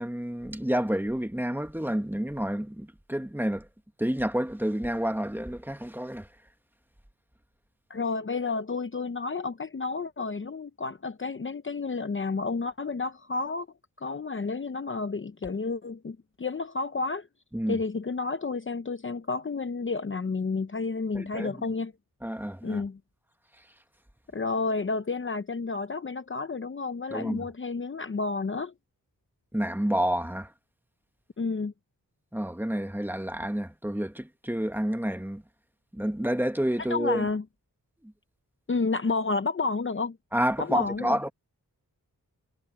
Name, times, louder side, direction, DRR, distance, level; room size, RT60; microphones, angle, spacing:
voice 1, 0.0-3.7 4.0-6.3 17.5-17.8 21.1-21.6 22.2-22.8 27.1-27.5 29.5-30.5 32.3-35.4 35.9-37.3 38.0-38.1 40.3-41.3, equal, 5° right, 1.5 m, -29 dB
voice 2, 7.9-13.7 14.0-17.3 17.7-21.9 22.6-23.0 24.3-28.7 31.4-31.7 36.9-37.4 38.7-40.2 40.6-41.2, left 4 dB, 35° left, 0.8 m, -31 dB
wide cardioid pair, 90°, 36 cm